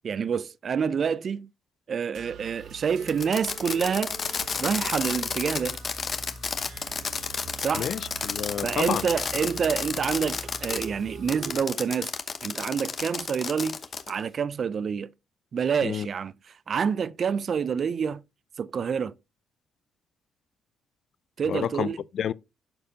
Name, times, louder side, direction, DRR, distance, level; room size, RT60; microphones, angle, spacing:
voice 1, 0.0-1.5 1.9-4.2 4.6-5.8 7.6-7.9 8.6-12.1 12.4-13.8 14.1-15.1 15.5-16.3 16.7-18.2 18.6-19.1 21.4-22.0, right 6 dB, 50° right, 0.4 m, -27 dB
sound 1, 2.1-11.6, right 3 dB, 70° right, 0.9 m, -44 dB
Fireworks, 3.0-10.9 11.3-14.2, left 5 dB, 45° left, 1.0 m, -32 dB
voice 2, 7.7-9.0 15.8-16.1 21.5-21.9 22.1-22.3, left 9 dB, 65° left, 0.4 m, -29 dB
12.0 x 4.2 x 2.7 m
cardioid pair, 90°, 0 cm